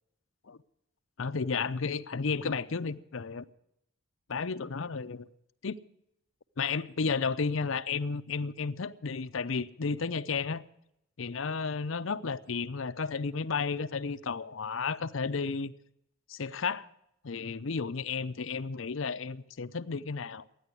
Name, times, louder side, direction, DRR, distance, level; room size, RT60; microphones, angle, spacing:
voice 1, 1.2-3.4 4.3-5.2 5.6-5.8 6.6-10.7 11.2-15.7 16.3-16.9 17.2-20.4, left 5 dB, 65° left, 0.6 m, -32 dB
13.0 x 9.9 x 9.6 m
head